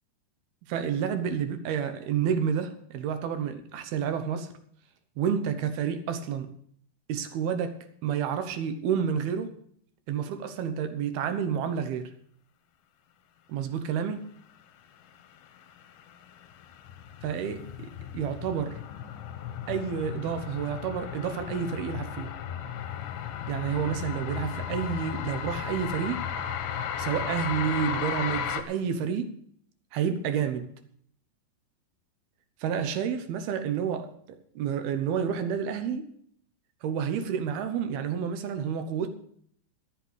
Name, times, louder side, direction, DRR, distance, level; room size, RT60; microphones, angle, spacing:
voice 1, 0.7-4.5 5.2-6.5 7.1-7.7 8.0-9.5 10.1-12.1 13.5-14.2 17.2-18.8 19.7-22.3 23.5-26.3 27.0-29.4 29.9-30.7 32.6-34.1 34.6-36.1 36.8-39.1, right 7 dB, 70° right, 9 dB, 2.8 m, -29 dB
sound 1, 15.8-28.6, left 8 dB, 70° left, 2.3 m, -35 dB
13.0 x 8.2 x 8.1 m, 0.64 s
omnidirectional pair, 5.0 m